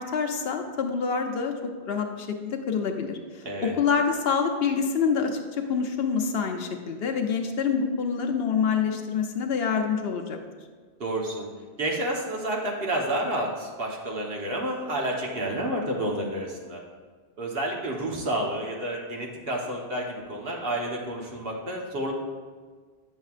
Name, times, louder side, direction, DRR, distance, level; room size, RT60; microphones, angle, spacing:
voice 1, 0.0-1.5 1.8-10.4, left 6 dB, 70° left, 5 dB, 0.9 m, -26 dB
voice 2, 11.0-11.5 11.8-16.8 17.4-22.1, right 1 dB, 65° right, -1 dB, 1.3 m, -30 dB
9.0 x 6.3 x 2.4 m, 1.5 s
omnidirectional pair, 1.1 m